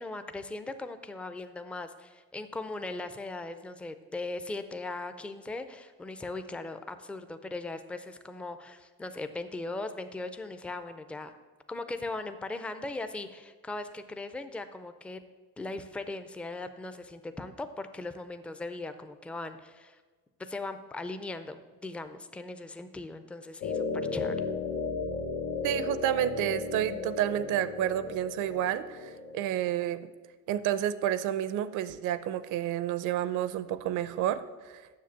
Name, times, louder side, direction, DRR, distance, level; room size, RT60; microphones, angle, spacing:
voice 1, 0.0-11.3 11.7-15.2 15.6-20.0 20.4-24.4, left 2 dB, 5° left, 9 dB, 0.3 m, -39 dB
sound 1, 23.6-29.7, left 4 dB, 65° left, 1.4 m, -35 dB
voice 2, 25.6-30.0 30.5-34.8, right 11 dB, 65° right, 14 dB, 0.6 m, -30 dB
7.6 x 6.7 x 7.2 m, 1.3 s
cardioid pair, 145°, 33 cm